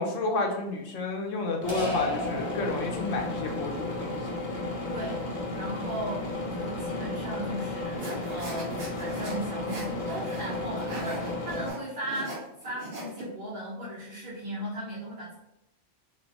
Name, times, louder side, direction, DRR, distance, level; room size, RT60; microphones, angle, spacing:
voice 1, 0.0-4.2, left 2 dB, 85° left, 2 dB, 1.0 m, -30 dB
sound 1, 1.6-11.7, left 2 dB, 50° left, 0.6 m, -34 dB
sound 2, 1.7-3.4, left 1 dB, 15° right, 1.2 m, -35 dB
voice 2, 4.9-5.3 5.6-15.3, right 1 dB, 40° right, -9 dB, 1.1 m, -37 dB
sound 3, 8.0-13.2, right 1 dB, 65° right, 1.5 m, -40 dB
3.2 x 2.9 x 2.6 m, 0.87 s
omnidirectional pair, 1.3 m